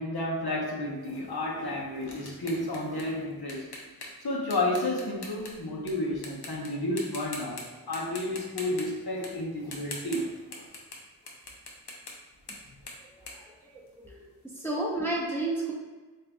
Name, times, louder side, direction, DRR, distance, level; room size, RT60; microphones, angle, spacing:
voice 1, 0.0-3.7 4.2-10.7, left 1 dB, 70° left, -4 dB, 1.1 m, -31 dB
sound 1, 1.0-5.9 6.2-6.7 7.0-7.6 7.9-14.3, left 2 dB, 85° left, 0.8 m, -44 dB
voice 2, 13.2-14.2 14.6-15.7, right 2 dB, 5° left, -4 dB, 0.7 m, -32 dB
6.5 x 2.7 x 2.4 m, 1.3 s
wide cardioid pair, 50°, 39 cm